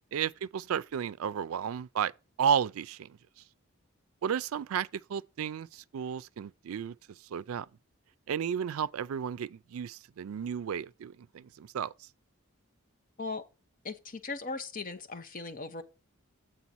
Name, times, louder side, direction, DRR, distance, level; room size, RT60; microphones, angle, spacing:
voice 1, 0.1-2.1 2.4-3.2 4.2-7.7 8.3-12.1, right 8 dB, 85° right, 0.4 m, -33 dB
voice 2, 13.8-15.8, left 3 dB, 40° left, 0.9 m, -38 dB
7.7 x 4.1 x 6.1 m
head